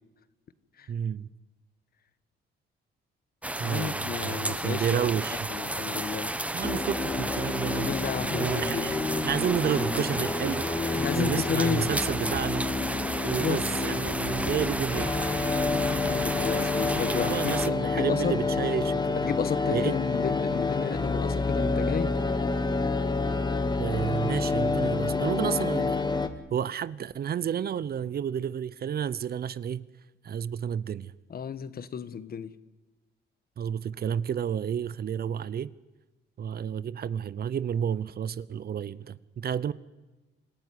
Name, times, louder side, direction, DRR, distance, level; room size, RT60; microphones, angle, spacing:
voice 1, 0.9-1.3 3.6-5.5 6.5-7.9 8.2-9.0 9.2-12.7 13.2-15.3 16.8-19.2 19.7-19.9 23.8-26.0 26.5-29.8 30.2-31.1 33.6-35.7 36.4-39.7, right 8 dB, 50° right, 0.8 m, -31 dB
sound 1, 3.4-17.7, right 1 dB, 5° right, 1.0 m, -33 dB
voice 2, 3.6-6.6 7.7-8.9 10.9-11.9 13.2-13.6 16.0-18.4 19.1-22.1 31.3-32.5, left 7 dB, 50° left, 1.3 m, -33 dB
sound 2, 6.6-26.3, left 3 dB, 20° left, 1.9 m, -29 dB
26.5 x 14.5 x 9.8 m
cardioid pair, 90°, 20 cm